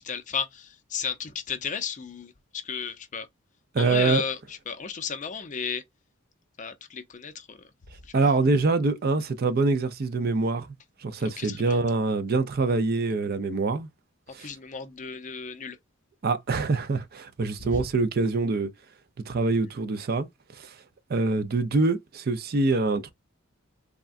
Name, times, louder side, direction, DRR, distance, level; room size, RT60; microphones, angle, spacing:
voice 1, 0.0-2.3 2.7-3.3 3.8-4.4 4.7-5.8 6.6-7.6 11.4-11.8 14.4-15.8, left 6 dB, 35° left, 0.5 m, -33 dB
voice 2, 3.7-4.2 8.1-10.7 11.0-13.9 14.3-14.5 16.2-18.7 19.3-20.3 20.6-20.7 21.1-23.1, right 3 dB, 45° right, 0.5 m, -25 dB
3.5 x 2.2 x 2.4 m
head